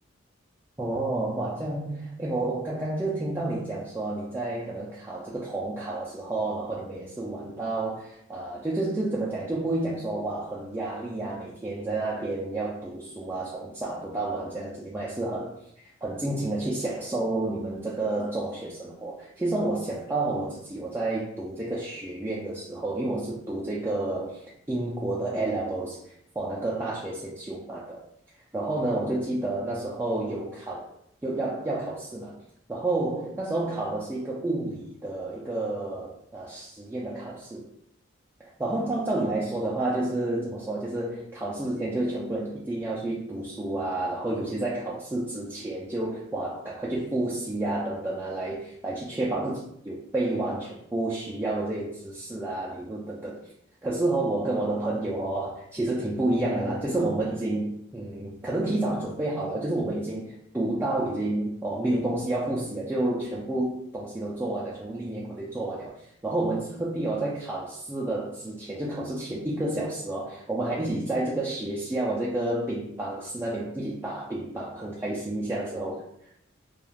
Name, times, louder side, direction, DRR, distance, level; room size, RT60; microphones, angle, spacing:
voice 1, 0.8-28.0 28.5-30.9 31.2-32.4 32.7-37.7 38.4-53.4 53.8-76.0, right 2 dB, 10° right, -6 dB, 0.3 m, -30 dB
2.3 x 2.3 x 3.2 m, 0.75 s
head